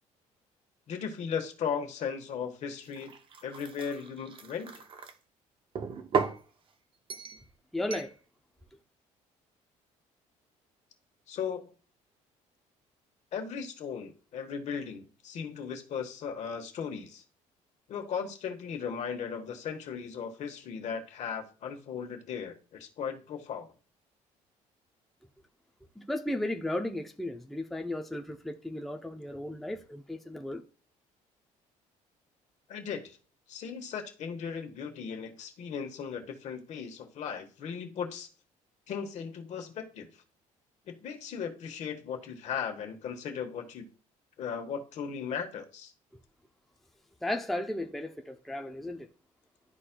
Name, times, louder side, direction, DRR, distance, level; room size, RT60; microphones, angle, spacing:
voice 1, 0.9-3.1 3.4-4.8 11.3-11.7 13.3-17.2 17.9-23.7 32.7-33.2 33.5-38.3 38.9-40.1 40.9-43.9 44.4-45.9, left 7 dB, 60° left, 1.3 m, -37 dB
sound 1, 2.9-5.1 5.8-6.4 7.1-7.4 7.9-8.1, right 5 dB, 40° right, 0.7 m, -35 dB
voice 2, 7.7-8.1 26.0-30.6 47.2-49.1, left 1 dB, ahead, 0.6 m, -35 dB
12.0 x 4.2 x 2.2 m
cardioid pair, 120°, 14 cm